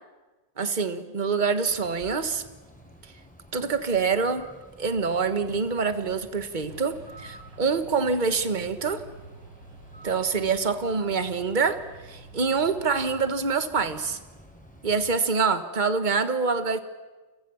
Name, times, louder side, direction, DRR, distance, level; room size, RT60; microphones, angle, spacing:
voice 1, 0.6-2.4 3.5-4.5 4.8-9.0 10.0-14.2 14.8-16.8, right 5 dB, 25° right, 10 dB, 1.5 m, -26 dB
Bird, 1.7-15.2, equal, 5° left, 4.5 m, -50 dB
sound 1, 6.7-13.1, right 2 dB, 85° right, 4.7 m, -49 dB
29.5 x 26.0 x 7.2 m, 1.2 s
omnidirectional pair, 2.0 m